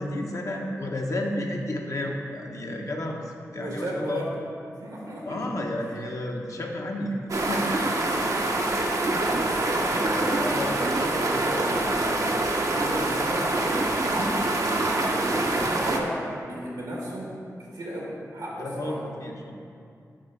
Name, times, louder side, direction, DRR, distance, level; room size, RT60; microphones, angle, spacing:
voice 1, 0.0-4.2 5.2-7.7 10.4-10.8 18.6-19.5, left 1 dB, 60° left, 0 dB, 0.8 m, -31 dB
voice 2, 3.5-4.3 4.8-5.9 9.0-12.2 12.7-17.4 17.7-19.0, right 1 dB, 85° right, -4 dB, 1.5 m, -35 dB
sound 1, 7.3-16.0, right 2 dB, 60° right, 0.7 m, -25 dB
6.3 x 3.2 x 5.8 m, 2.4 s
cardioid pair, 40°, 6 cm